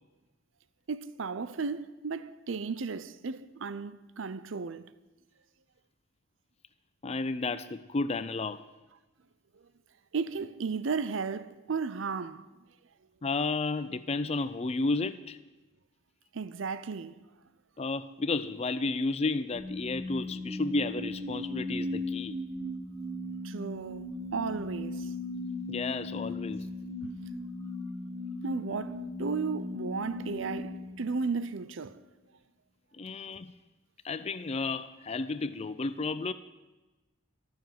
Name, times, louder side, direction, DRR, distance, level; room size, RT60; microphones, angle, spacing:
voice 1, 0.9-4.9 10.1-12.5 16.3-17.2 23.4-25.1 27.0-27.1 28.4-32.0, right 4 dB, 70° right, 0.6 m, -34 dB
voice 2, 7.0-8.7 13.2-15.4 17.8-22.4 25.7-26.7 32.9-33.5 34.0-36.3, left 3 dB, 30° left, 0.4 m, -32 dB
sound 1, 19.5-31.7, left 1 dB, 55° right, 5.0 m, -37 dB
14.5 x 12.5 x 7.5 m
head